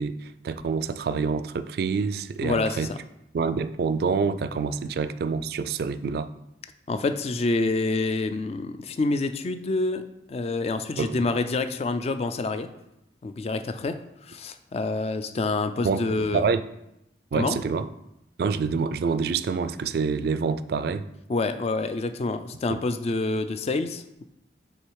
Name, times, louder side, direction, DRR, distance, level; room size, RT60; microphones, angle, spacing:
voice 1, 0.0-2.9 3.3-6.3 11.0-11.3 15.8-16.6 17.3-17.9 18.4-21.0 22.7-22.8, right 5 dB, 60° right, 13 dB, 0.3 m, -27 dB
voice 2, 2.4-3.0 6.9-10.0 10.3-12.7 13.2-14.0 14.3-16.4 17.3-17.6 21.3-24.2, left 3 dB, 35° left, 10 dB, 0.3 m, -27 dB
6.3 x 3.2 x 4.6 m, 0.85 s
head